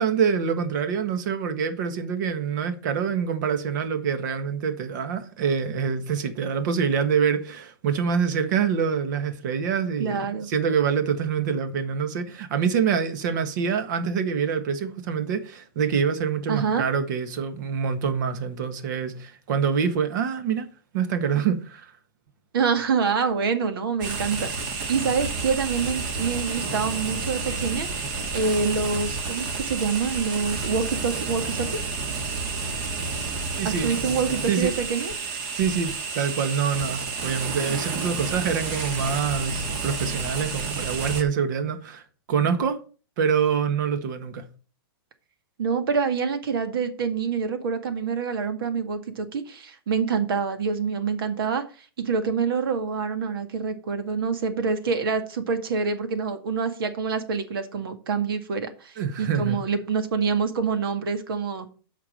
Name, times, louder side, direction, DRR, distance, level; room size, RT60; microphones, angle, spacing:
voice 1, 0.0-20.7 20.9-21.9 33.6-33.9 34.5-34.7 35.5-42.8 43.2-44.4 59.0-59.6, right 6 dB, 50° right, 1.6 m, -25 dB
voice 2, 10.0-10.5 16.5-16.8 22.5-27.9 28.3-31.8 33.6-35.1 45.6-61.7, right 5 dB, 70° right, 2.0 m, -26 dB
sound 1, 24.0-41.2, right 4 dB, 35° right, 1.6 m, -30 dB
8.4 x 5.9 x 6.5 m
supercardioid pair, 160°, 12 cm